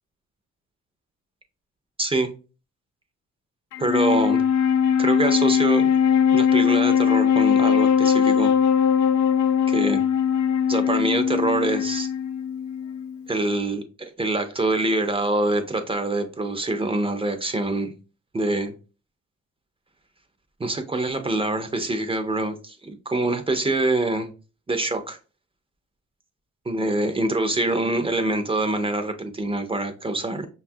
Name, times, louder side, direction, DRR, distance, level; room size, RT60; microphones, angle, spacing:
voice 1, 2.0-2.3 3.8-4.4 5.0-5.9 6.3-8.5 9.7-10.0 10.7-12.1 13.3-17.9 18.3-18.7 20.6-24.3 24.7-25.2 26.7-30.5, right 2 dB, 20° right, 7 dB, 0.5 m, -25 dB
Wind instrument woodwind instrument, 3.7-13.2, left 8 dB, 75° left, 0.5 m, -20 dB
5.2 x 2.3 x 2.6 m, 0.34 s
cardioid pair, 90°, 30 cm